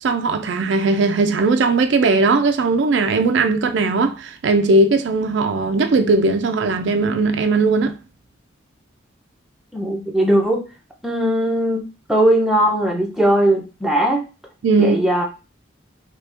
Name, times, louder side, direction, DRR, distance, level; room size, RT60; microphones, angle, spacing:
voice 1, 0.0-8.0 14.6-15.0, right 3 dB, 65° right, 0.4 m, -18 dB
voice 2, 9.7-10.6 11.0-11.8 12.1-14.2 14.8-15.2, right 1 dB, ahead, 0.5 m, -18 dB
2.8 x 2.8 x 3.3 m
head